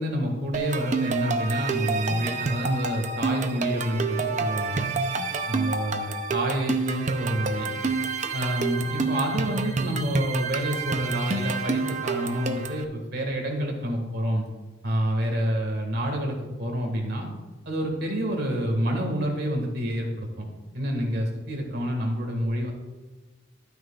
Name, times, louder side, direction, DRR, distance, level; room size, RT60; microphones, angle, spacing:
voice 1, 0.0-4.9 5.5-7.7 8.3-14.5 14.8-17.3 17.7-20.5 20.7-22.7, equal, 60° right, 2 dB, 1.8 m, -28 dB
sound 1, 0.5-12.8, right 4 dB, 40° right, 0.6 m, -28 dB
12.5 x 9.2 x 2.4 m, 1.2 s
head